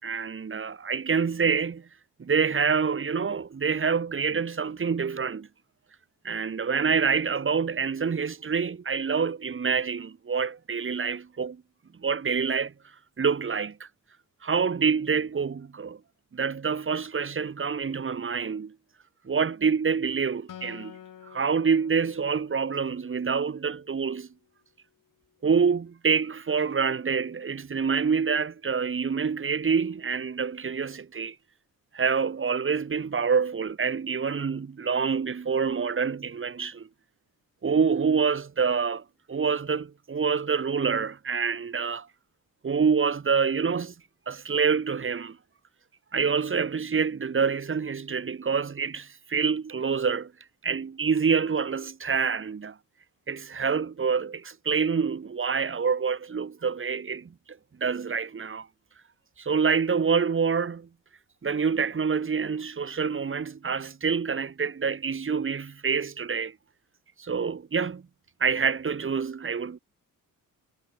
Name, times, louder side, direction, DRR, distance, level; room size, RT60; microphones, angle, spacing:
voice 1, 0.0-1.9 2.2-5.5 6.2-11.6 12.0-12.7 13.2-13.9 14.4-16.0 16.3-18.7 19.2-21.0 21.3-24.3 25.4-31.3 31.9-36.9 37.6-42.1 42.6-43.9 44.3-45.4 46.1-50.3 50.6-52.8 53.3-57.3 57.8-58.7 59.4-60.9 61.4-66.5 67.2-68.0 68.4-69.8, right 6 dB, 35° right, 3.1 m, -26 dB
Acoustic guitar, 20.5-23.9, left 10 dB, 65° left, 5.5 m, -49 dB
cardioid pair, 110°, 34 cm